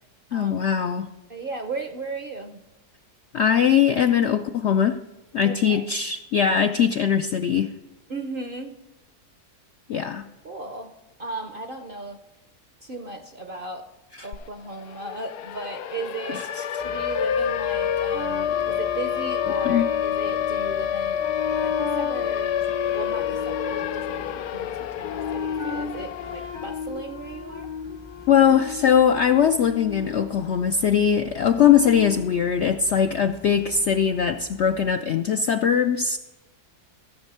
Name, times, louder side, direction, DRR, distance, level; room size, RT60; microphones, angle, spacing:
voice 1, 0.3-1.1 3.3-5.0 5.3-7.7 9.9-10.2 16.3-16.6 19.6-19.9 28.3-36.2, left 8 dB, 70° left, 8 dB, 0.6 m, -21 dB
voice 2, 1.3-2.6 5.4-5.9 8.1-8.8 9.9-10.1 10.4-10.9 11.2-12.2 12.8-13.9 14.2-16.5 16.8-22.6 22.9-27.7 31.5-31.7, right 3 dB, 50° right, 7 dB, 0.6 m, -36 dB
Siren, 14.3-14.4 14.7-26.8, left 10 dB, 90° left, 1.2 m, -28 dB
sound 1, 16.8-34.9, left 6 dB, 30° left, 0.5 m, -34 dB
15.0 x 7.2 x 5.5 m, 1.1 s
omnidirectional pair, 1.7 m